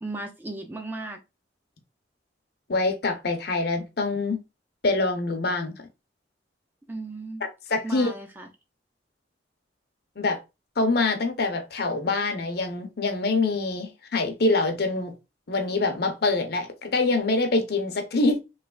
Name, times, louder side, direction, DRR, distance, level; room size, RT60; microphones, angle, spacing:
voice 1, 0.0-1.2 6.9-7.4 7.8-8.5, right 2 dB, 10° right, 0.4 m, -35 dB
voice 2, 2.7-4.4 4.8-5.7 7.7-8.1 10.2-10.4 10.8-15.1 15.5-18.4, left 3 dB, 55° left, 0.7 m, -25 dB
3.2 x 3.0 x 2.3 m
head